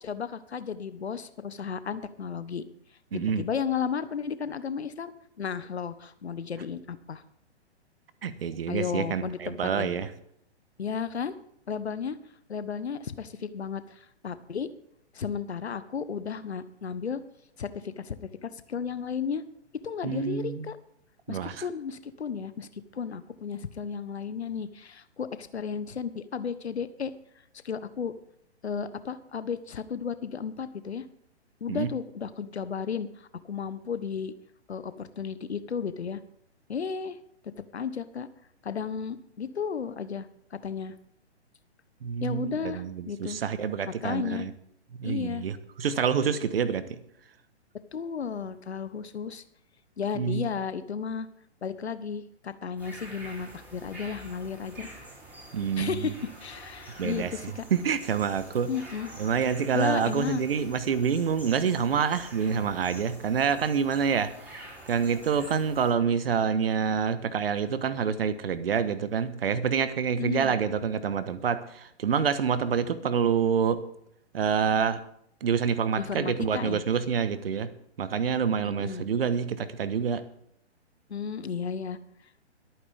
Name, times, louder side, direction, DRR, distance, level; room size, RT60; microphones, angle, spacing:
voice 1, 0.0-2.6 3.1-7.2 8.7-9.9 10.8-11.3 11.7-12.2 12.5-14.7 15.1-17.2 17.6-19.4 19.8-20.8 21.3-27.1 27.6-28.1 28.6-31.1 31.6-34.3 34.7-36.2 36.7-37.2 37.7-38.3 38.6-40.9 42.2-43.4 44.0-44.5 45.0-45.4 47.9-49.4 50.0-51.3 51.6-54.9 55.8-56.1 56.4-57.7 58.7-59.1 59.7-60.4 70.1-70.6 76.0-76.8 78.6-79.0 81.1-82.0, left 6 dB, 70° left, 13 dB, 1.2 m, -34 dB
voice 2, 3.1-3.4 8.2-10.1 20.0-20.7 21.3-21.6 31.7-31.9 42.0-44.5 45.0-47.0 50.1-50.5 55.5-56.1 57.0-58.7 59.2-64.6 64.9-73.8 74.3-75.0 75.4-77.7 78.0-80.2, right 7 dB, 55° right, 13 dB, 1.4 m, -27 dB
sound 1, 52.8-65.9, right 1 dB, 5° right, 5.8 m, -47 dB
22.0 x 9.3 x 3.6 m, 0.72 s
figure-of-eight pair, 125°, 34 cm